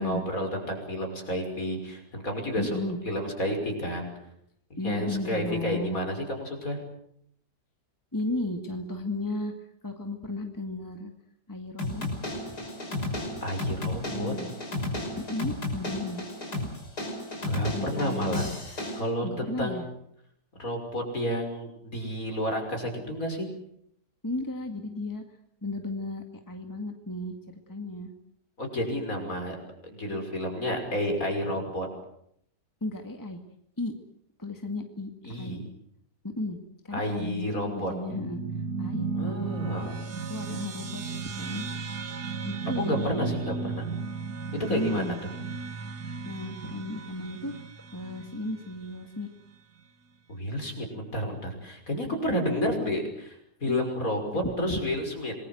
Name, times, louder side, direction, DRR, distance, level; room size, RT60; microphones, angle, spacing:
voice 1, 0.0-2.8 3.0-4.1 4.7-6.8 13.4-14.3 17.4-18.5 19.0-19.8 20.6-23.5 28.6-29.6 29.8-31.9 35.2-35.7 36.9-37.9 39.1-40.0 42.8-43.9 44.7-45.1 50.3-53.0 53.6-55.4, equal, 50° left, 3 dB, 6.4 m, -30 dB
voice 2, 2.6-3.0 4.8-6.0 8.1-11.1 11.5-12.1 12.4-12.7 14.1-14.5 15.3-16.2 17.7-18.5 19.2-19.9 24.2-25.2 25.6-28.1 32.8-33.4 33.8-33.9 34.4-35.1 35.4-35.6 36.4-36.6 36.8-38.4 38.8-39.9 40.3-41.6 42.4-43.1 44.6-45.2 46.3-47.5 47.9-49.3 52.5-52.9 53.7-53.9 54.3-55.0, left 2 dB, 10° left, 5 dB, 1.9 m, -34 dB
sound 1, 11.8-19.0, left 2 dB, 70° left, 6.3 m, -33 dB
sound 2, 38.1-48.9, right 5 dB, 65° right, 2.4 m, -35 dB
27.0 x 21.0 x 7.9 m, 0.70 s
omnidirectional pair, 1.8 m